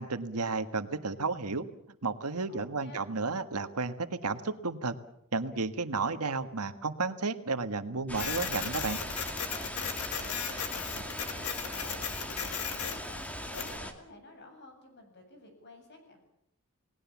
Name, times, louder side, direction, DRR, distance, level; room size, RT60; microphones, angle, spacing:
voice 1, 0.0-1.6 2.0-4.9 5.3-9.0, right 3 dB, 85° right, 10 dB, 1.6 m, -32 dB
voice 2, 2.5-3.1 9.9-12.0 12.2-16.2, left 2 dB, 50° left, 5 dB, 7.7 m, -54 dB
Printer, 8.1-13.8, left 7 dB, 85° left, 2.5 m, -37 dB
sound 1, 8.1-13.9, equal, 5° left, 2.3 m, -39 dB
29.0 x 19.5 x 7.3 m, 0.77 s
head